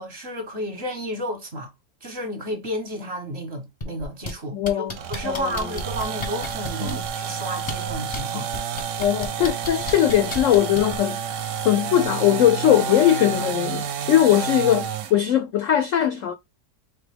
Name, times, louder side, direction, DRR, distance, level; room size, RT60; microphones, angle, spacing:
voice 1, 0.0-1.7 2.0-8.5, equal, 45° right, 1.2 m, -32 dB
sound 1, 3.8-4.3 4.6-7.1 7.6-8.2 8.5-11.0 12.0-12.1, left 2 dB, 25° left, 0.6 m, -32 dB
voice 2, 4.5-5.0 5.2-5.5 6.8-7.0 8.3-8.4 9.0-11.2 11.6-16.3, left 11 dB, 75° left, 0.7 m, -20 dB
sound 2, 4.9-15.2, right 7 dB, 65° right, 0.8 m, -30 dB
4.3 x 2.9 x 3.4 m
omnidirectional pair, 1.8 m